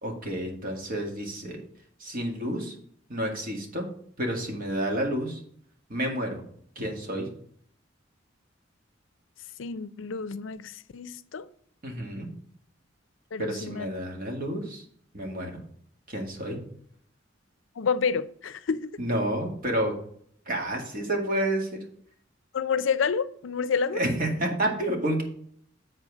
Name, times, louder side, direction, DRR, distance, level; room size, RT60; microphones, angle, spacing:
voice 1, 0.0-1.6 2.0-2.7 3.1-3.9 4.2-5.4 5.9-6.4 6.8-7.3 11.8-12.3 13.4-14.8 15.1-15.6 16.1-16.6 19.0-19.9 20.5-21.8 23.9-25.2, right 1 dB, 50° right, 2.0 m, -29 dB
voice 2, 9.6-11.5 13.3-13.9 17.8-18.9 22.5-24.0, left 6 dB, 90° left, 0.5 m, -29 dB
7.7 x 4.4 x 6.2 m
head